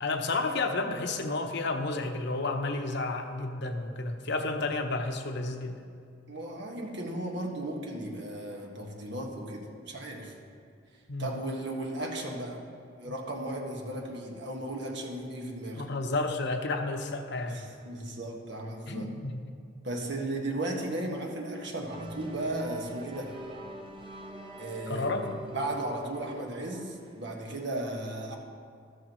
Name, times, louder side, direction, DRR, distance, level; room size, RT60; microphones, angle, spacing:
voice 1, 0.0-5.8 11.1-11.3 13.0-13.1 15.8-17.6 18.9-19.4 24.9-25.2, left 3 dB, 65° left, 5 dB, 0.9 m, -31 dB
voice 2, 6.3-10.3 11.2-12.6 13.0-15.9 17.4-19.1 19.8-23.3 24.6-28.4, right 1 dB, 65° right, 1 dB, 1.6 m, -35 dB
sound 1, 21.9-27.3, right 1 dB, 25° right, 0.9 m, -44 dB
13.5 x 13.5 x 3.1 m, 2.3 s
head